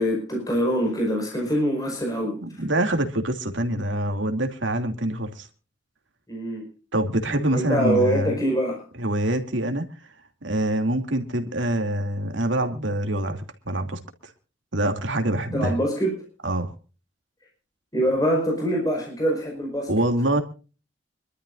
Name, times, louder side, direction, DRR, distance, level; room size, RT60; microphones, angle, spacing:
voice 1, 0.0-2.4 6.3-6.6 7.5-8.8 15.5-16.2 17.9-19.9, equal, 20° left, 5.4 m, -24 dB
voice 2, 2.4-5.5 6.9-8.4 9.0-9.9 10.4-14.0 14.7-15.7 16.4-16.7 19.9-20.4, right 1 dB, 90° right, 2.7 m, -25 dB
26.0 x 13.0 x 2.6 m
head